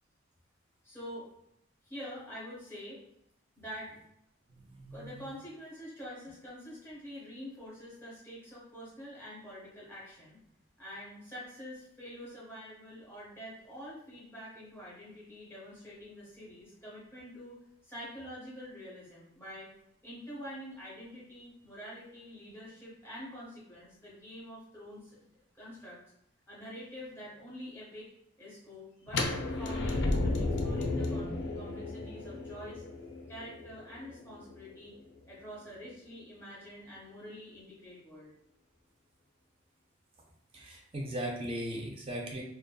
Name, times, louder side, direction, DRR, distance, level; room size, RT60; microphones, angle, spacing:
voice 1, 0.8-1.3 1.8-3.0 3.6-3.9 4.9-10.4 10.8-19.7 20.0-25.3 25.5-26.0 26.5-28.1 28.4-32.8 33.3-34.9 35.3-38.3, equal, 10° left, -7 dB, 0.7 m, -46 dB
voice 2, 4.7-5.3 40.5-42.4, equal, 30° right, 1 dB, 0.4 m, -38 dB
sound 1, 29.1-34.9, left 2 dB, 55° left, 0.4 m, -33 dB
2.5 x 2.2 x 2.2 m, 0.77 s
head